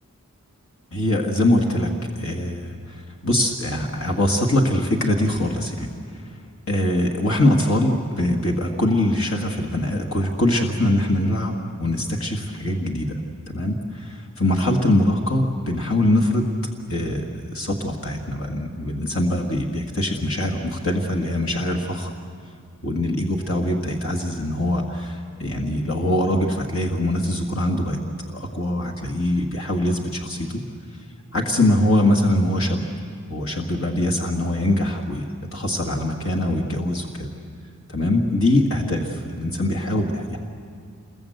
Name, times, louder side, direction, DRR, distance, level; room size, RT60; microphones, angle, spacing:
voice 1, 0.9-5.9 6.7-13.2 13.5-16.5 16.9-22.1 22.8-28.0 28.3-30.6 31.3-32.8 33.3-35.2 35.5-37.3 37.9-40.4, left 1 dB, 60° left, 0 dB, 1.9 m, -23 dB
27.5 x 22.0 x 8.0 m, 2.1 s
head